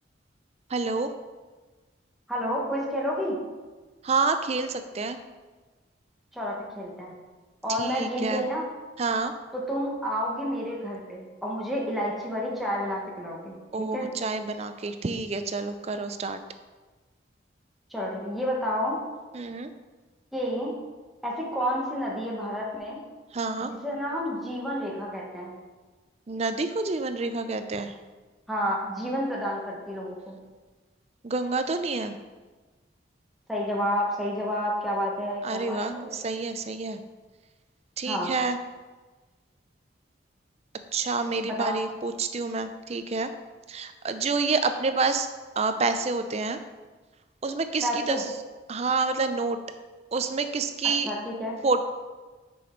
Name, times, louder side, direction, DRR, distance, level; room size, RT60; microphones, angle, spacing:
voice 1, 0.7-1.1 4.0-5.2 7.7-8.4 9.0-9.3 13.7-16.4 19.3-19.7 23.3-23.7 26.3-28.0 31.2-32.2 35.4-37.0 38.0-38.6 40.9-43.3 43.7-45.3 45.6-46.6 47.4-48.3 48.7-49.6 50.1-51.1 51.6-51.8, right 4 dB, 35° right, 9 dB, 0.4 m, -28 dB
voice 2, 2.3-3.4 6.3-7.2 7.6-8.6 9.5-14.1 17.9-19.0 20.3-20.8 21.2-23.0 23.7-25.5 28.5-30.4 33.5-36.2 38.1-38.3 41.4-41.7 47.8-48.2 51.1-51.6, equal, ahead, -4 dB, 1.2 m, -30 dB
6.3 x 5.2 x 4.4 m, 1.3 s
head